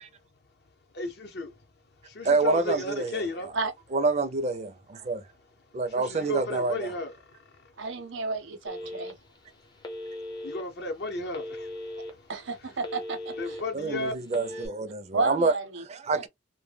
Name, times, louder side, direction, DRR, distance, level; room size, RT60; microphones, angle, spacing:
voice 1, 0.9-1.5 2.0-3.5 5.9-7.7 10.4-12.3 13.4-14.1, left 2 dB, 55° left, 0.7 m, -34 dB
voice 2, 2.2-3.5 3.9-5.3 5.7-6.9 13.7-15.5 15.9-16.3, right 3 dB, 35° right, 0.4 m, -27 dB
voice 3, 7.8-9.1 12.3-13.6 15.1-15.8, right 3 dB, 80° right, 0.6 m, -31 dB
Telephone, 8.7-9.4 9.8-10.6 11.3-12.1 12.5-13.6 14.2-14.7, left 1 dB, 25° left, 0.5 m, -38 dB
2.1 x 2.1 x 3.2 m
head